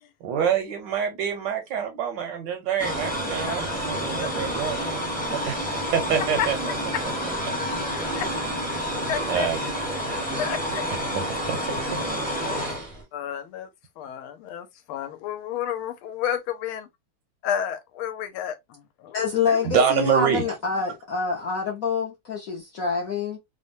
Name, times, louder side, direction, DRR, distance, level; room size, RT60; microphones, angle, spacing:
voice 1, 0.2-5.0 5.3-6.7 9.3-9.9 10.2-10.3 11.1-11.6 12.4-13.0 19.6-20.5, right 7 dB, 75° right, 1.1 m, -26 dB
sound 1, 2.8-13.0, equal, 10° left, 0.5 m, -29 dB
voice 2, 9.1-9.5 10.4-10.9 13.1-13.7 14.0-16.9 17.4-19.2 19.5-19.7, left 9 dB, 90° left, 1.5 m, -31 dB
voice 3, 19.1-23.4, left 5 dB, 65° left, 0.8 m, -26 dB
3.4 x 2.1 x 2.5 m
omnidirectional pair, 2.3 m